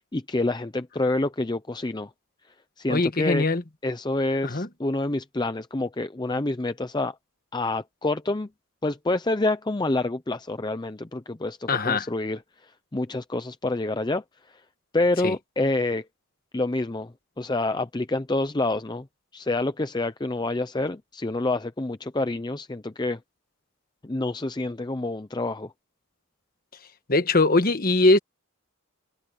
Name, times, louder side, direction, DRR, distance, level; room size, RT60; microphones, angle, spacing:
voice 1, 0.1-2.1 2.8-3.5 3.8-7.1 7.5-8.5 8.8-14.6 14.9-16.1 16.5-17.1 17.4-19.1 19.3-23.2 24.0-25.7, left 2 dB, 20° left, 0.6 m, -27 dB
voice 2, 2.9-3.6 4.4-4.7 11.7-12.1 15.2-15.3 27.1-28.2, left 2 dB, 40° left, 1.3 m, -21 dB
head